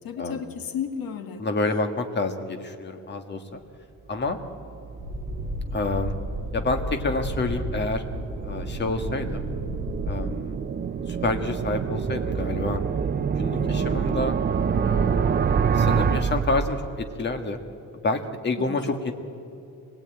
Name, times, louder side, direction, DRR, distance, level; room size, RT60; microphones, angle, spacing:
voice 1, 0.0-1.5 13.6-14.0 18.6-18.8, left 7 dB, 70° left, 6 dB, 1.9 m, -34 dB
voice 2, 1.4-3.6 4.1-4.4 5.7-6.1 6.5-8.0 8.4-9.4 10.0-10.5 11.1-12.8 13.4-14.3 14.8-15.3 15.7-17.6 18.0-19.1, left 2 dB, 30° left, 6 dB, 1.6 m, -28 dB
sound 1, 4.3-17.2, right 6 dB, 25° right, 0.5 m, -27 dB
sound 2, 5.0-10.3, equal, 5° left, 5.8 m, -33 dB
26.0 x 20.0 x 9.0 m, 2.9 s
cardioid pair, 175°, 37 cm